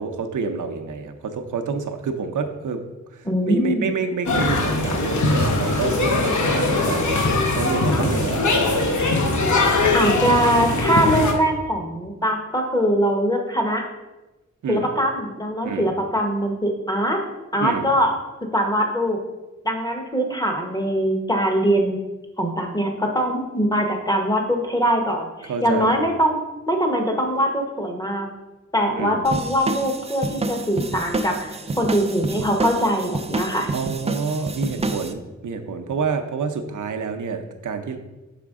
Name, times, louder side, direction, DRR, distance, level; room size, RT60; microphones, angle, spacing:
voice 1, 0.0-2.8 3.1-7.2 7.5-8.8 14.6-14.9 15.6-15.9 17.6-17.9 25.5-25.9 28.9-29.2 33.7-38.0, right 5 dB, 85° right, 5 dB, 0.6 m, -28 dB
voice 2, 3.2-3.9 9.9-13.8 14.7-17.2 17.5-18.1 18.5-19.2 19.6-22.0 22.4-26.4 26.7-28.3 28.7-33.7, equal, 15° left, 2 dB, 0.8 m, -22 dB
sound 1, 4.3-11.3, left 2 dB, 75° left, 0.9 m, -21 dB
sound 2, 29.2-35.1, right 2 dB, 20° right, 0.3 m, -28 dB
5.9 x 5.0 x 3.5 m, 1.1 s
wide cardioid pair, 130°, 30 cm